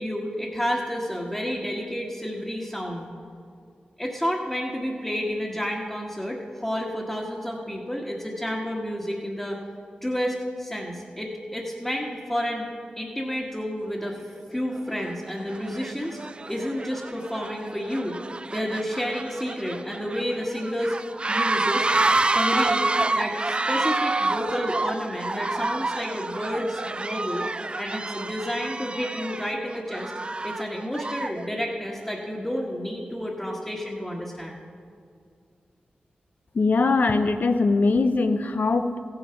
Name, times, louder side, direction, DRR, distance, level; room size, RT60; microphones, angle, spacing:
voice 1, 0.0-3.1 4.0-9.6 10.0-12.7 13.0-14.2 14.5-16.2 16.5-18.2 18.5-21.0 21.3-21.9 22.3-22.9 23.1-27.5 27.8-30.1 30.4-34.6, equal, 10° left, -5 dB, 1.6 m, -30 dB
sound 1, 14.1-14.2 14.9-15.1 15.5-31.5, right 2 dB, 30° right, 0.3 m, -28 dB
voice 2, 36.5-39.0, left 3 dB, 60° left, 8 dB, 0.7 m, -21 dB
14.5 x 8.8 x 5.8 m, 2.3 s
cardioid pair, 45°, 3 cm